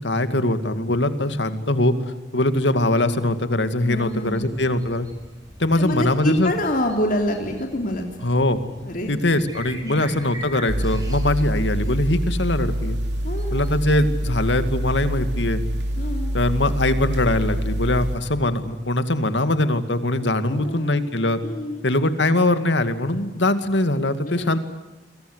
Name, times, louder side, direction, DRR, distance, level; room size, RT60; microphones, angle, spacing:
voice 1, 0.0-1.9 2.3-5.1 5.6-6.5 8.2-8.6 9.1-13.0 13.5-15.6 16.3-21.4 21.8-24.6, left 1 dB, 85° left, 10 dB, 2.3 m, -22 dB
voice 2, 3.8-4.4 5.7-8.0 8.9-9.4 9.8-10.0 13.2-13.6 16.0-16.3 20.4-21.1 21.4-21.8 24.2-24.6, left 1 dB, 50° left, 2 dB, 3.3 m, -27 dB
sound 1, 3.9-15.2, right 1 dB, 20° right, 6.2 m, -43 dB
sound 2, 10.7-18.2, equal, 65° right, 3.8 m, -26 dB
28.5 x 23.0 x 8.1 m, 1.1 s
head